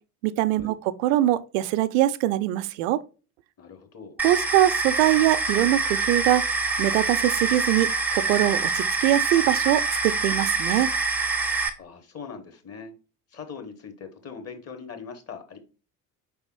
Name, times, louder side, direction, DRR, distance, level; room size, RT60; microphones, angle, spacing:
voice 1, 0.2-3.0 4.2-6.4 6.8-10.9, right 14 dB, 55° right, 0.5 m, -23 dB
voice 2, 3.6-4.2 11.8-12.9 13.3-15.6, left 6 dB, 30° left, 1.0 m, -41 dB
sound 1, 4.2-11.7, right 4 dB, 5° right, 0.5 m, -25 dB
5.1 x 3.4 x 3.0 m
figure-of-eight pair, 55°, 47 cm